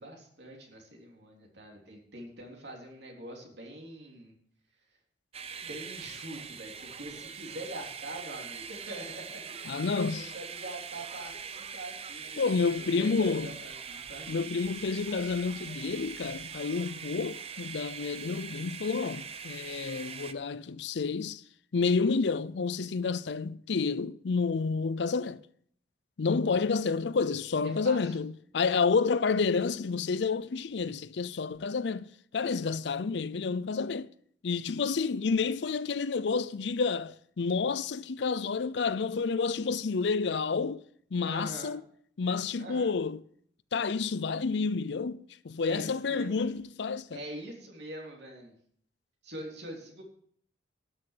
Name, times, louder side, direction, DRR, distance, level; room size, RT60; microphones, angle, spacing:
voice 1, 0.0-4.3 5.6-9.7 10.1-14.6 27.6-28.2 41.2-41.8 42.6-42.9 45.6-46.5 47.1-48.5 49.2-50.0, right 1 dB, 65° right, 3.5 m, -44 dB
sound 1, 5.3-20.3, right 6 dB, 35° right, 0.6 m, -42 dB
voice 2, 9.7-10.3 12.4-13.5 14.3-21.4 21.7-25.4 26.2-32.1 32.3-34.1 34.4-40.8 41.1-41.8 42.2-43.2 43.7-47.2, left 4 dB, 70° left, 0.5 m, -29 dB
13.0 x 6.4 x 8.4 m
head